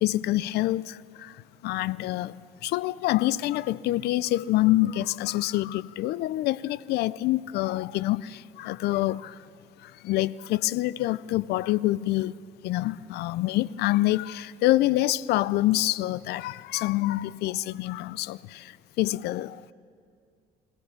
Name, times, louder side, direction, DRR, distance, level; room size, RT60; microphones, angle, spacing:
voice 1, 0.0-1.0 1.6-2.3 2.6-8.2 8.6-9.3 10.0-12.3 12.6-18.4 19.0-19.6, left 16 dB, 75° left, 0.4 m, -26 dB
21.5 x 18.0 x 7.0 m
cardioid pair, 110°, 17 cm